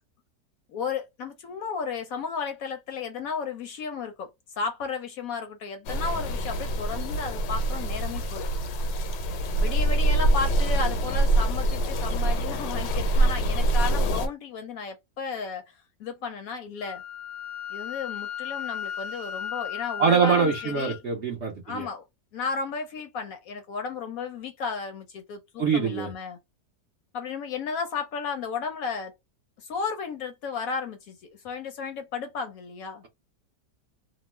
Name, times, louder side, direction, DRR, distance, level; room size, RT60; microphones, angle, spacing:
voice 1, 0.7-4.3 4.6-8.5 9.6-17.0 17.7-21.0 21.6-22.1 22.3-26.4 27.1-29.1 29.6-31.2 31.4-33.0, left 5 dB, 70° left, 0.9 m, -33 dB
sound 1, 5.9-14.3, right 1 dB, 90° left, 1.3 m, -25 dB
Wind instrument woodwind instrument, 16.8-21.0, left 9 dB, 35° left, 0.6 m, -35 dB
voice 2, 20.0-21.9 25.6-26.1, right 6 dB, 65° right, 0.6 m, -24 dB
2.9 x 2.0 x 3.0 m
omnidirectional pair, 1.8 m